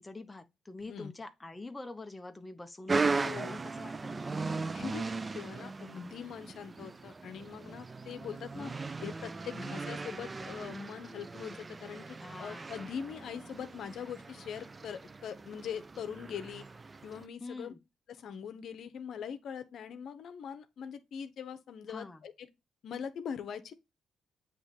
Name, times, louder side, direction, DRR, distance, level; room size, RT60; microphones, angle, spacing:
voice 1, 0.0-4.5 12.2-12.8 17.4-17.8 21.9-22.2, left 2 dB, 15° left, 0.7 m, -46 dB
sound 1, 2.9-17.3, right 3 dB, 25° right, 0.4 m, -38 dB
voice 2, 3.1-3.6 4.7-5.0 5.3-8.7 9.0-16.6 17.0-17.7 18.1-22.5 22.8-23.7, left 7 dB, 65° left, 0.9 m, -42 dB
7.6 x 3.1 x 4.1 m
cardioid pair, 90°, 0 cm